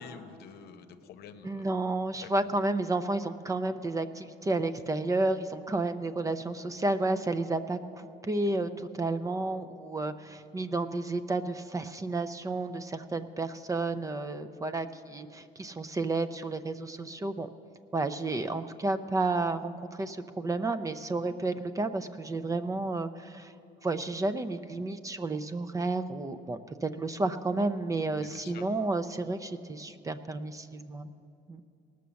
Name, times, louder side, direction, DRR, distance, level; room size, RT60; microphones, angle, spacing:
voice 1, 0.0-1.7 2.1-2.3 28.2-28.6, left 7 dB, 70° left, 9 dB, 0.8 m, -48 dB
voice 2, 1.4-17.5 17.9-23.5 23.8-31.1 31.5-31.6, right 2 dB, 20° right, 11 dB, 0.5 m, -31 dB
18.5 x 6.3 x 6.9 m, 2.6 s
cardioid pair, 110°, 17 cm